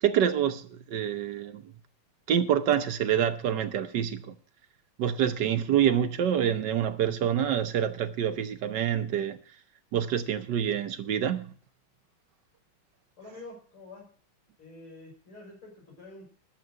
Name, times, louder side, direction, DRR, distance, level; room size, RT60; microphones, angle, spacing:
voice 1, 0.0-1.7 2.3-4.4 5.0-9.4 9.9-11.5, right 9 dB, 65° right, 1.3 m, -27 dB
voice 2, 13.2-14.1 14.6-16.3, left 2 dB, 85° left, 6.2 m, -47 dB
11.5 x 7.3 x 7.7 m
omnidirectional pair, 2.3 m